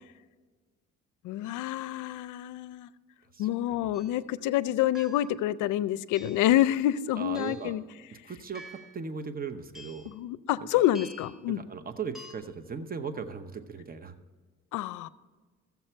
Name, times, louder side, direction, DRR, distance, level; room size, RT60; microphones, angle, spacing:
voice 1, 1.2-2.9 3.4-7.8 10.1-11.6 14.7-15.1, left 13 dB, 90° left, 0.5 m, -27 dB
voice 2, 3.3-3.9 7.2-7.7 8.2-8.6 8.9-10.1 10.6-10.8 11.5-14.1, right 5 dB, 30° right, 0.8 m, -38 dB
sound 1, 3.9-4.2 4.9-5.5 6.1-6.6 7.3-7.8 8.5-9.0 9.7-10.1 10.9-11.4 12.1-12.3, equal, ahead, 1.6 m, -48 dB
14.5 x 7.1 x 4.5 m
cardioid pair, 90°, 30 cm